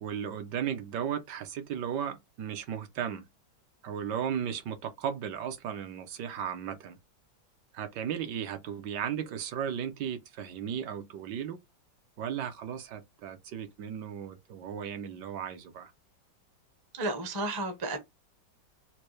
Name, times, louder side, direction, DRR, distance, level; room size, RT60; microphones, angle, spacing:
voice 1, 0.0-3.3 3.8-7.0 7.7-11.6 12.2-15.9, right 8 dB, 75° right, 1.2 m, -35 dB
voice 2, 17.0-18.0, right 2 dB, 30° right, 0.4 m, -32 dB
4.3 x 2.2 x 3.1 m
omnidirectional pair, 1.9 m